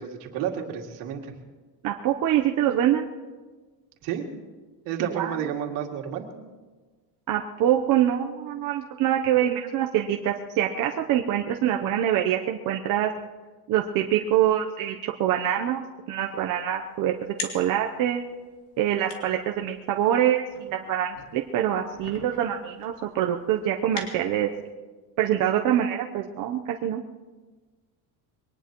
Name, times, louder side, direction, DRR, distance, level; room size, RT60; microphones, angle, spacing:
voice 1, 0.0-1.3 4.0-4.3 4.9-6.3, right 9 dB, 70° right, 1 dB, 2.4 m, -31 dB
voice 2, 1.8-3.1 5.0-5.4 7.3-13.1 13.7-15.8 16.1-18.2 18.8-24.5 25.2-27.0, right 11 dB, 45° right, 2 dB, 0.8 m, -25 dB
sound 1, 16.4-24.7, left 4 dB, 60° left, 3.4 m, -43 dB
22.5 x 19.0 x 3.0 m, 1.3 s
cardioid pair, 155°, 44 cm